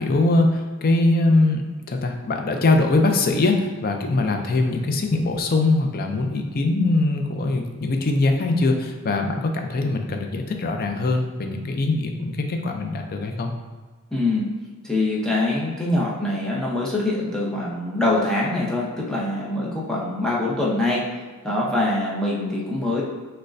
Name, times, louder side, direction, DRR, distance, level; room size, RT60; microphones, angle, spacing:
voice 1, 0.0-13.5, left 2 dB, 40° left, 4 dB, 0.4 m, -22 dB
voice 2, 14.1-14.5 14.8-21.0 21.4-23.0, left 2 dB, 5° left, -5 dB, 0.7 m, -24 dB
6.3 x 2.2 x 2.5 m, 1.4 s
head